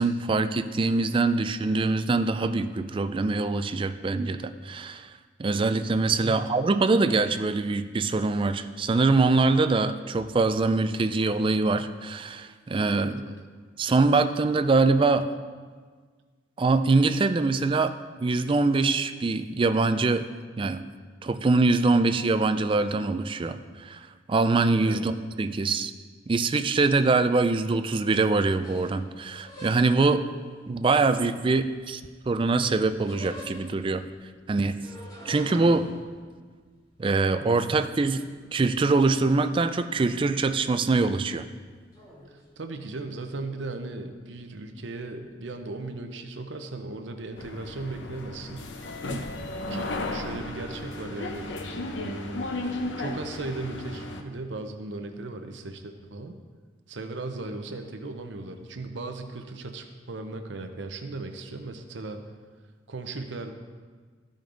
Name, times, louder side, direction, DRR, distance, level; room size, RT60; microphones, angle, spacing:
voice 1, 0.0-5.1 5.4-13.1 13.8-15.3 16.6-18.0 18.2-20.3 20.6-20.8 21.2-25.9 26.3-30.2 30.7-32.0 32.3-34.0 34.5-34.8 35.3-35.8 37.0-38.2 38.5-41.5 49.0-49.3 49.7-49.9, right 3 dB, 30° right, 10 dB, 0.3 m, -24 dB
voice 2, 12.9-13.4 24.8-25.1 35.5-35.8 42.3-48.7 49.7-52.5 53.0-56.4 56.9-62.3 62.9-63.5, right 2 dB, 75° right, 6 dB, 0.7 m, -37 dB
sound 1, 28.5-30.2 30.9-32.2 32.5-34.0 34.7-38.4 38.8-39.5 39.7-40.3 40.6-40.9 41.9-42.4, equal, 20° left, 1.5 m, -45 dB
sound 2, 47.4-54.2, left 2 dB, 75° left, 0.8 m, -34 dB
13.5 x 5.2 x 3.9 m, 1.5 s
head